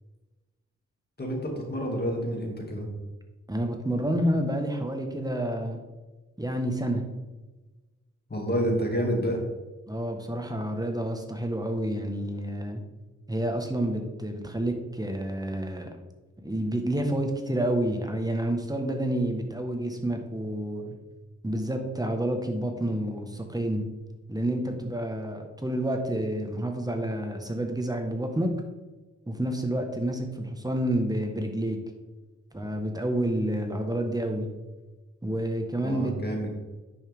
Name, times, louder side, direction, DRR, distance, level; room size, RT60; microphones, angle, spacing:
voice 1, 1.2-2.8 8.3-9.4 35.8-36.5, equal, 35° left, 0 dB, 2.5 m, -28 dB
voice 2, 3.5-5.8 6.4-7.0 9.9-12.8 13.3-15.9 16.4-21.0 21.4-23.9 24.3-28.5 29.3-31.8 32.5-34.5 35.2-36.1, right 1 dB, 15° right, 4 dB, 1.4 m, -29 dB
9.9 x 5.5 x 3.6 m, 1.2 s
cardioid pair, 70°, 29 cm